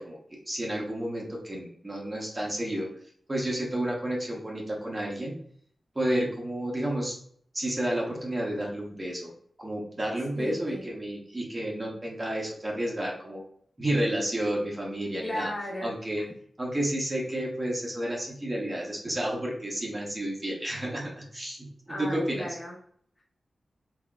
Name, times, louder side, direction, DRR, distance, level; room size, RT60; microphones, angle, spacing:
voice 1, 0.0-2.9 3.3-5.4 5.9-7.2 7.5-9.3 9.6-13.4 13.8-15.5 15.8-16.2 16.6-22.5, right 1 dB, 20° right, -2 dB, 0.8 m, -31 dB
voice 2, 10.4-10.8 15.2-15.9 21.9-22.7, left 1 dB, 10° left, -9 dB, 1.0 m, -35 dB
3.8 x 3.3 x 2.3 m, 0.62 s
wide cardioid pair, 155°, 0 cm